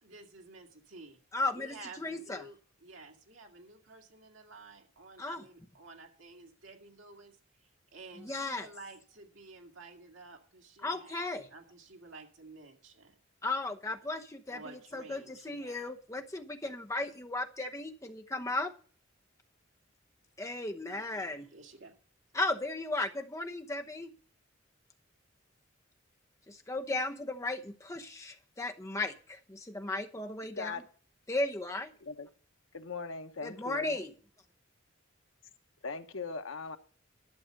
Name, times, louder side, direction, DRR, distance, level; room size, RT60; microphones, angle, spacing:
voice 1, 0.0-1.2 1.5-7.4 7.6-13.2 14.5-15.9 20.9-21.9, right 3 dB, 80° right, 2 dB, 2.0 m, -52 dB
voice 2, 1.3-2.4 5.2-5.4 8.2-8.7 10.8-11.5 13.4-18.7 20.4-21.5 22.3-24.1 26.5-30.7 31.3-31.9 33.4-34.1, left 2 dB, 15° left, 4 dB, 0.9 m, -35 dB
voice 3, 32.7-34.0 35.8-36.8, left 4 dB, 85° left, 7 dB, 1.0 m, -39 dB
12.0 x 6.6 x 6.5 m, 0.42 s
head